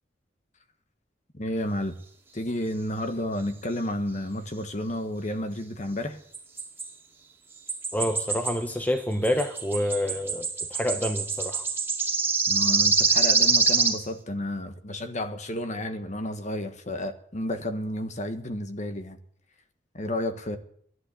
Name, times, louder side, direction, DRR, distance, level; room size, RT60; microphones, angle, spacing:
voice 1, 1.3-2.0 2.3-6.2 12.5-19.2 19.9-20.6, left 1 dB, 40° left, 8 dB, 1.4 m, -31 dB
sound 1, 6.3-6.9 7.7-8.6 8.9-14.0, right 4 dB, 10° right, 2.2 m, -25 dB
voice 2, 7.9-11.7, equal, 10° left, 7 dB, 0.9 m, -28 dB
14.0 x 11.5 x 8.4 m, 0.63 s
head